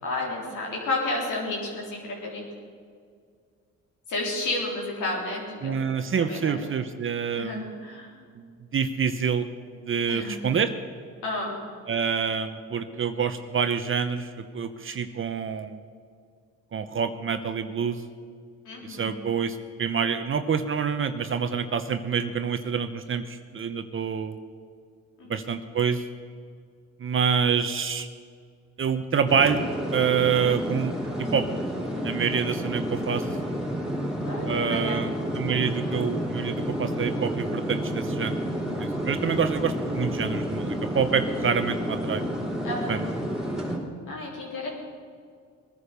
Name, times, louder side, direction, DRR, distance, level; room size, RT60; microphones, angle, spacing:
voice 1, 0.0-2.5 4.1-6.6 7.4-8.1 10.1-10.6 11.2-11.6 18.7-19.2 25.2-25.5 34.2-35.1 42.6-43.1 44.1-44.7, left 2 dB, 80° left, -3 dB, 3.7 m, -32 dB
voice 2, 5.6-7.6 8.3-8.5 8.7-9.5 9.9-10.7 11.9-15.8 16.7-18.0 18.8-24.4 25.3-26.0 27.0-28.1 28.8-30.9 31.2-31.5 32.0-33.2 34.5-38.4 38.7-42.2 42.9-43.1, right 6 dB, 45° right, 9 dB, 0.9 m, -27 dB
sound 1, 29.3-43.8, equal, ahead, 3.6 m, -30 dB
19.5 x 9.9 x 6.8 m, 2.1 s
cardioid pair, 90°, 30 cm